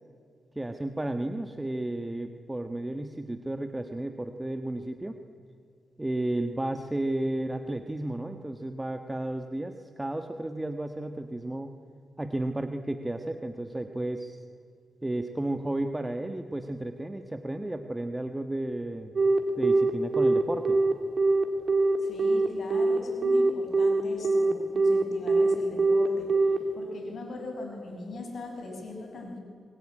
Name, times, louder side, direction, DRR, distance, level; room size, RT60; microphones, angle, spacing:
voice 1, 0.5-5.2 6.0-11.7 12.2-14.4 15.0-19.1 19.6-20.8, right 1 dB, 15° right, 6 dB, 1.4 m, -33 dB
Telephone, 19.2-26.6, right 3 dB, 55° right, 3.5 m, -22 dB
voice 2, 22.0-26.4 26.7-29.4, left 2 dB, 65° left, 3 dB, 6.0 m, -40 dB
25.5 x 21.0 x 10.0 m, 2.4 s
cardioid pair, 90°, 0 cm